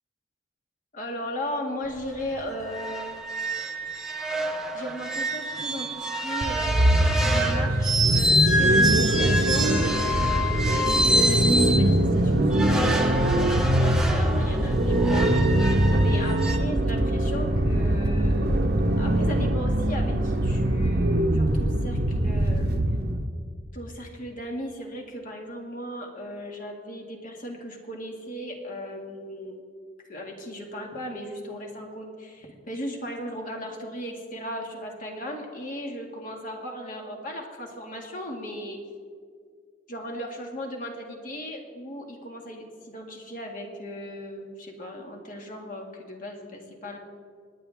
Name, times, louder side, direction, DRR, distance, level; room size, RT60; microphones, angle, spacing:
voice 1, 0.9-3.5 3.7-4.1 4.7-15.3 16.0-18.7 19.0-22.7 23.7-29.6 30.0-38.8 39.9-47.0, equal, 45° left, 1 dB, 2.2 m, -37 dB
sound 1, 1.9-2.0 2.3-2.4 2.7-11.9 12.5-16.6, right 1 dB, 5° right, 1.1 m, -27 dB
sound 2, 6.4-23.3, right 1 dB, 55° right, 1.0 m, -23 dB
28.5 x 10.0 x 3.6 m, 2.1 s
head